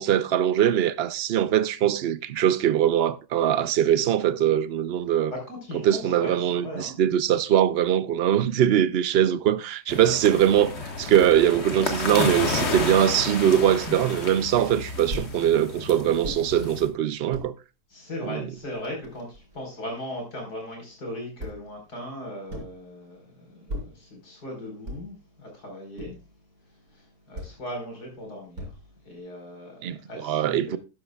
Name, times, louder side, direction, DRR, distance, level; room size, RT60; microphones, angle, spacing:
voice 1, 0.0-5.3 5.8-17.5 18.2-18.4 29.8-30.8, right 10 dB, 80° right, 0.5 m, -22 dB
voice 2, 5.3-6.9 10.0-10.2 17.9-26.2 26.6-30.8, left 1 dB, 70° left, 5.2 m, -38 dB
sound 1, 9.9-16.9, left 3 dB, 45° left, 1.8 m, -31 dB
sound 2, 12.8-13.0 13.9-14.1 15.1-15.4 16.2-16.4 17.1-17.5 18.2-18.3 18.6-19.6 21.4-21.8 22.5-22.8 23.7-24.0 24.9-25.2 26.0-26.3 27.3-27.6 28.6-29.0, equal, 65° right, 3.8 m, -37 dB
12.5 x 10.5 x 2.3 m
omnidirectional pair, 1.7 m